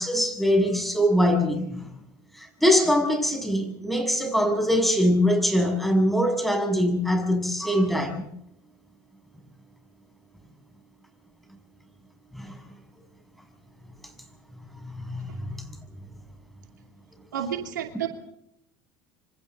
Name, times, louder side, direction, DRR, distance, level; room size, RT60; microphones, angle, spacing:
voice 1, 0.0-1.9 2.4-8.3 12.3-12.6 14.8-15.6, equal, ahead, 4 dB, 6.7 m, -23 dB
voice 2, 17.3-18.1, right 9 dB, 90° right, 4 dB, 2.6 m, -30 dB
26.5 x 25.5 x 4.0 m, 0.72 s
hypercardioid pair, 75°, 10 cm